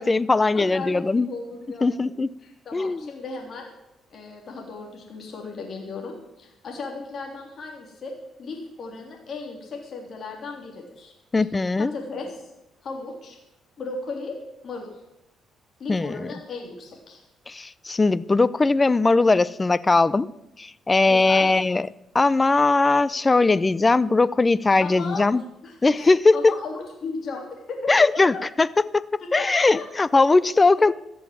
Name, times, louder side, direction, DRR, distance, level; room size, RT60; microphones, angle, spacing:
voice 1, 0.0-1.3 1.8-2.3 2.7-3.0 11.3-11.9 15.9-16.3 17.5-20.3 20.6-21.9 22.1-25.4 25.8-26.5 27.9-28.7 28.9-29.0 29.3-30.9, left 3 dB, 25° left, 19 dB, 0.5 m, -20 dB
voice 2, 0.5-2.1 2.4-3.7 4.1-8.1 8.4-11.1 11.8-12.5 12.8-13.4 13.8-14.4 14.6-14.9 15.8-17.2 21.1-21.5 24.8-25.3 25.6-28.4 29.2-29.9 30.6-30.7, left 4 dB, 55° left, 1 dB, 3.4 m, -36 dB
14.5 x 7.1 x 9.5 m, 0.88 s
cardioid pair, 90°, 0 cm